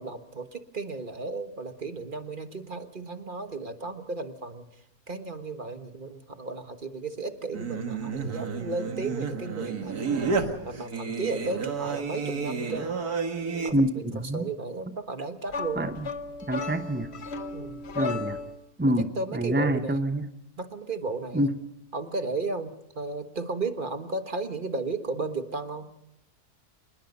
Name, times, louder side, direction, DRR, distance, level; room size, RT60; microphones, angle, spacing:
voice 1, 0.0-4.7 5.1-12.9 13.6-16.0 17.5-17.8 18.9-20.0 20.6-21.5 21.9-25.9, right 3 dB, 35° right, 8 dB, 1.4 m, -34 dB
Singing, 7.5-13.7, right 5 dB, 75° right, 2.2 m, -31 dB
voice 2, 13.7-14.4 15.8-16.1 16.5-17.1 17.9-18.4 18.8-20.3 21.3-21.5, right 1 dB, 10° right, 9 dB, 0.5 m, -26 dB
sound 1, 15.5-18.6, left 4 dB, 45° left, 1.2 m, -35 dB
27.0 x 20.5 x 5.5 m, 0.82 s
omnidirectional pair, 1.6 m